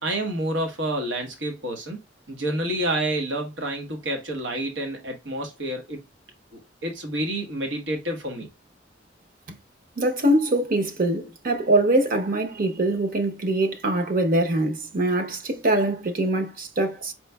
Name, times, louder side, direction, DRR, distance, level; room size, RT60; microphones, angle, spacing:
voice 1, 0.0-2.0 2.3-6.0 6.5-8.5, right 1 dB, 90° right, 1.0 m, -29 dB
voice 2, 10.0-17.1, right 1 dB, 50° right, 0.8 m, -23 dB
5.3 x 3.1 x 2.2 m
head